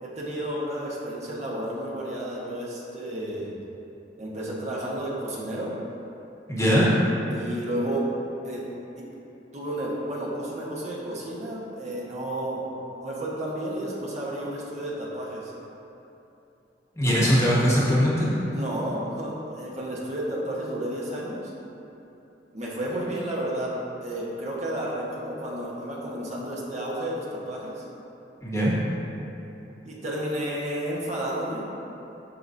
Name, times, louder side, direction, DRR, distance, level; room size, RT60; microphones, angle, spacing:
voice 1, 0.0-3.5 4.2-5.7 7.3-8.1 8.4-8.7 9.0-9.1 9.5-12.7 13.0-15.5 17.1-17.4 18.5-21.5 22.5-23.7 24.0-27.8 29.8-31.6, right 1 dB, 40° right, -5 dB, 1.1 m, -32 dB
voice 2, 6.5-6.9 17.0-18.3 28.4-28.7, equal, 15° left, -7 dB, 1.2 m, -21 dB
11.0 x 4.8 x 2.6 m, 2.9 s
head